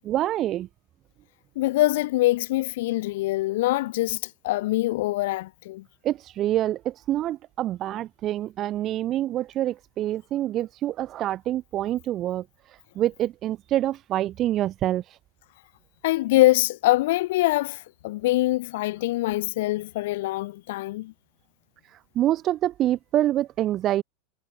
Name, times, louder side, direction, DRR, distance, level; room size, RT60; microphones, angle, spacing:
voice 1, 0.0-0.7 6.0-12.4 12.9-15.0 22.1-24.0, right 13 dB, 40° right, 1.2 m, -26 dB
voice 2, 1.6-5.8 16.0-21.1, left 18 dB, 70° left, 0.5 m, -24 dB
hypercardioid pair, 110°, 0 cm